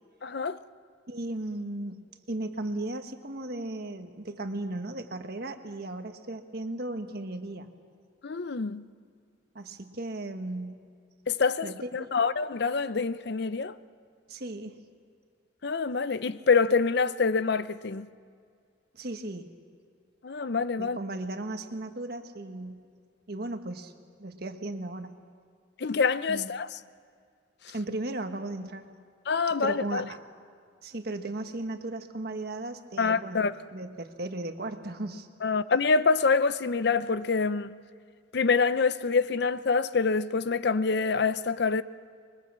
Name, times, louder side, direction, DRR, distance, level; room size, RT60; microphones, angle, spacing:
voice 1, 0.2-0.6 8.2-8.9 11.3-13.7 15.6-18.1 20.2-21.0 25.8-26.7 27.7-27.8 29.3-30.0 33.0-33.7 35.4-37.7 38.3-41.8, left 4 dB, 60° left, 0.6 m, -26 dB
voice 2, 1.1-7.7 9.5-10.8 11.6-12.1 14.3-14.8 18.9-19.5 20.8-22.8 23.3-23.9 24.2-25.1 26.3-26.5 27.7-28.9 29.6-30.2 30.8-33.4 33.7-35.3, right 2 dB, 55° right, 1.4 m, -36 dB
25.5 x 23.0 x 7.5 m
head